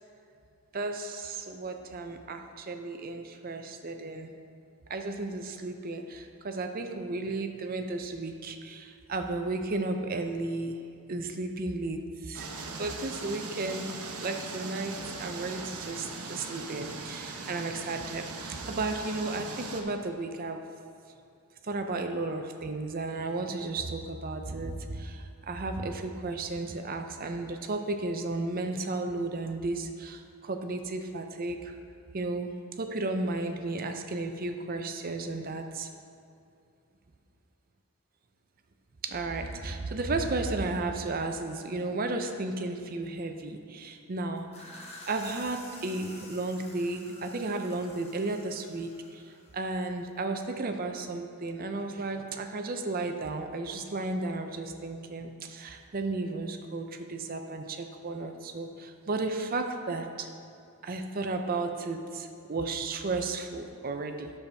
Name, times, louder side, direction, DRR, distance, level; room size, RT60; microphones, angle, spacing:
voice 1, 0.7-4.3 4.9-10.8 11.1-20.6 21.6-31.8 32.1-35.9 39.0-44.5 45.1-49.2 49.5-60.3 60.8-64.3, right 2 dB, 40° right, 6 dB, 0.5 m, -34 dB
sound 1, 12.3-19.8, right 3 dB, 85° right, 0.9 m, -40 dB
sound 2, 44.4-49.9, left 1 dB, 30° left, 1.3 m, -50 dB
10.5 x 6.9 x 3.4 m, 2.6 s
head